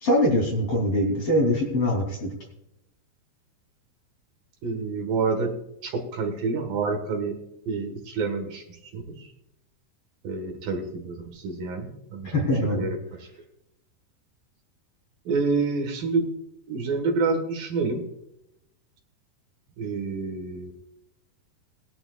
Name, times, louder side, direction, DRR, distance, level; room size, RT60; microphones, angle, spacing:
voice 1, 0.0-2.3 12.2-12.9, left 1 dB, 35° left, -1 dB, 3.7 m, -23 dB
voice 2, 4.6-5.5 5.8-7.4 7.7-8.6 8.9-9.0 10.2-11.2 11.4-13.0 15.3-16.3 16.7-18.0 19.8-20.7, right 4 dB, 65° right, 4 dB, 3.0 m, -28 dB
20.0 x 11.5 x 2.4 m, 0.82 s
omnidirectional pair, 4.6 m